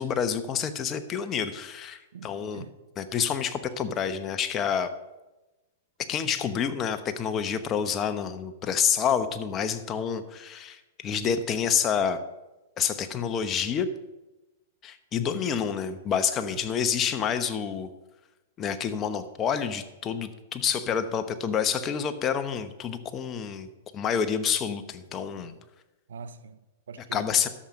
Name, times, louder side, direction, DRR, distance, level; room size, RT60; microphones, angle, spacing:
voice 1, 0.0-2.6 3.0-4.9 6.0-12.2 12.8-13.9 14.8-17.9 18.6-25.5 27.1-27.5, left 7 dB, 30° left, 0.9 m, -28 dB
voice 2, 2.1-2.7 16.5-16.6 25.3-25.6 26.1-27.3, right 6 dB, 80° right, 0.7 m, -44 dB
11.5 x 7.3 x 5.2 m
hypercardioid pair, 120°, 0 cm